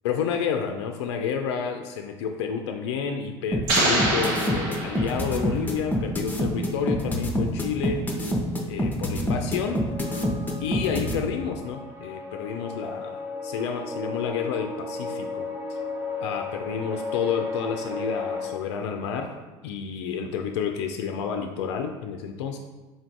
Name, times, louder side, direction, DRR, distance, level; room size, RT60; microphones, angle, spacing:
voice 1, 0.0-8.0 8.7-9.8 10.6-15.8 16.2-19.3 19.6-22.6, left 7 dB, 80° left, 4 dB, 0.4 m, -30 dB
sound 1, 3.5-11.1, equal, 10° left, 0.7 m, -26 dB
sound 2, 3.7-5.6, right 1 dB, 70° right, 1.1 m, -25 dB
sound 3, 9.6-18.5, left 3 dB, 20° right, 0.8 m, -34 dB
3.9 x 2.5 x 4.5 m, 1.2 s
hypercardioid pair, 85°, 14 cm